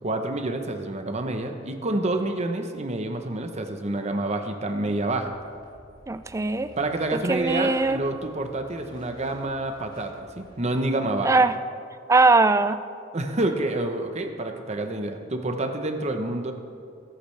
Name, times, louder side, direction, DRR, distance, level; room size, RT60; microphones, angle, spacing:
voice 1, 0.0-5.3 6.8-11.3 13.1-16.5, right 2 dB, 35° right, 5 dB, 0.9 m, -28 dB
sound 1, 5.0-10.6, equal, 25° left, 1.8 m, -52 dB
voice 2, 6.1-6.7 7.1-8.0 11.2-11.5 12.1-12.8, right 3 dB, 15° right, 11 dB, 0.4 m, -20 dB
20.5 x 8.5 x 3.3 m, 2.4 s
head